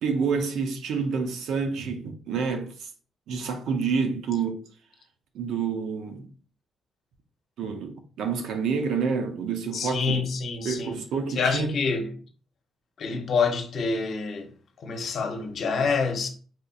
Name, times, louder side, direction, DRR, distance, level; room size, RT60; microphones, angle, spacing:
voice 1, 0.0-2.9 3.3-4.6 5.3-6.3 7.6-10.2 10.6-11.7, right 5 dB, 80° right, 0.6 m, -28 dB
voice 2, 9.7-11.0 11.3-12.1 13.0-14.5 14.8-16.3, left 5 dB, 60° left, 0.8 m, -27 dB
4.2 x 2.6 x 2.4 m
cardioid pair, 90°, 0 cm